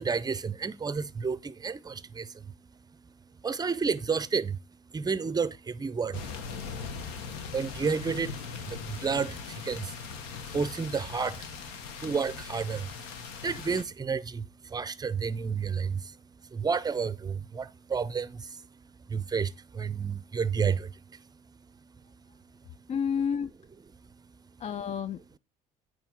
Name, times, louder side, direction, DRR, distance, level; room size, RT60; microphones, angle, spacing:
voice 1, 0.0-22.9 23.9-24.6 25.2-25.3, right 5 dB, 20° right, 0.6 m, -32 dB
sound 1, 6.1-13.8, left 6 dB, 75° left, 1.1 m, -40 dB
voice 2, 22.9-23.5 24.6-25.4, left 7 dB, 35° left, 0.4 m, -30 dB
8.8 x 3.2 x 5.5 m
hypercardioid pair, 60°, 20 cm